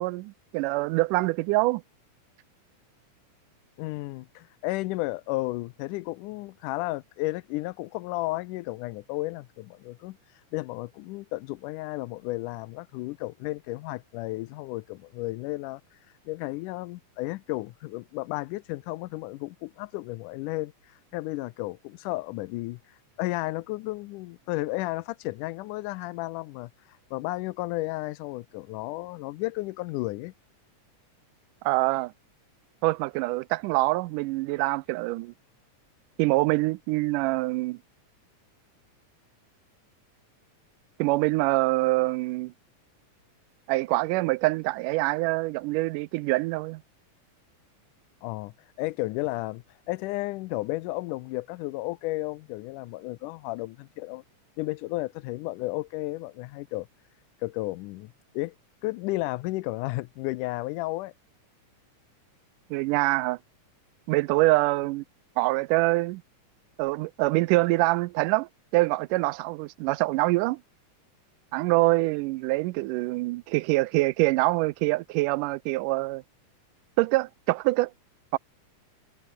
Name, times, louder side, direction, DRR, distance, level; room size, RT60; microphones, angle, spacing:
voice 1, 0.0-1.8 31.6-32.1 32.8-35.3 36.2-37.8 41.0-42.5 43.7-46.8 62.7-63.4 64.1-65.0 65.4-66.2 66.8-70.6 71.5-76.2 77.0-77.9 78.3-78.4, right 21 dB, 90° right, 2.1 m, -25 dB
voice 2, 3.8-10.2 10.5-15.8 16.3-20.7 21.1-22.8 23.2-26.7 27.1-30.3 48.2-54.2 54.6-56.9 57.4-58.5 58.8-61.1, left 20 dB, 85° left, 2.1 m, -33 dB
omnidirectional pair, 3.6 m